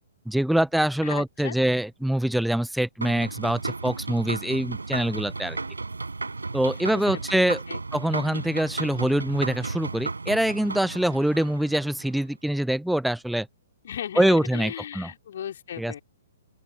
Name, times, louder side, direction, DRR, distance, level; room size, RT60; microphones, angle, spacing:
voice 1, 0.3-5.6 6.5-7.6 7.9-13.5 14.2-15.1 15.8-15.9, right 1 dB, ahead, 0.7 m, -24 dB
voice 2, 1.0-1.6 6.7-7.8 13.8-16.0, left 9 dB, 50° left, 3.8 m, -37 dB
sound 1, 3.0-12.1, right 3 dB, 75° right, 5.1 m, -34 dB
open air
figure-of-eight pair, 120°, 0 cm